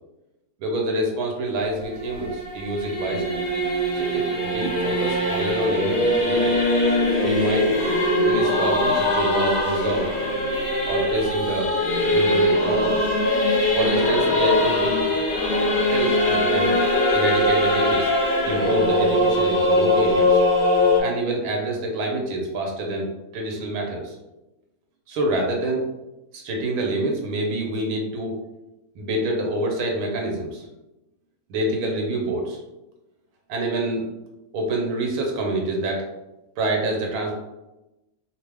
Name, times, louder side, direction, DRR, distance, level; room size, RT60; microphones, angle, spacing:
voice 1, 0.6-3.4 3.9-6.6 7.2-7.7 8.2-10.1 10.9-11.7 12.0-13.1 13.7-15.1 15.9-16.8 17.1-18.1 18.4-20.4 21.0-23.1 23.3-24.2 25.1-25.8 26.3-28.4 29.0-30.6 31.5-32.6 33.5-34.1 34.5-36.1 36.6-37.4, right 1 dB, 90° right, 1 dB, 1.1 m, -26 dB
Singing / Musical instrument, 1.6-21.0, left 1 dB, 45° left, 0.6 m, -21 dB
2.8 x 2.1 x 3.3 m, 0.98 s
omnidirectional pair, 1.5 m